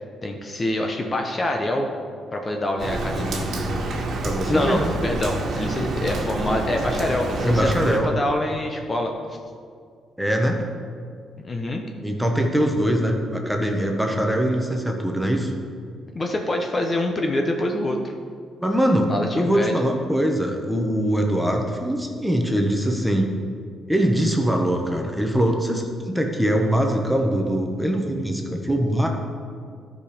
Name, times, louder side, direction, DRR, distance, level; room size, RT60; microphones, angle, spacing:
voice 1, 0.2-1.9 2.3-3.5 4.5-9.1 11.4-11.8 16.1-18.1 19.1-19.8, left 1 dB, 30° left, 2 dB, 0.9 m, -25 dB
Rain, 2.8-8.0, right 2 dB, 65° right, 1.5 m, -27 dB
voice 2, 4.2-4.9 7.4-8.1 10.2-10.6 12.0-15.5 18.6-23.3 23.9-29.1, equal, 5° right, 2 dB, 1.2 m, -22 dB
12.5 x 5.2 x 5.0 m, 2.1 s
cardioid pair, 90°, 0 cm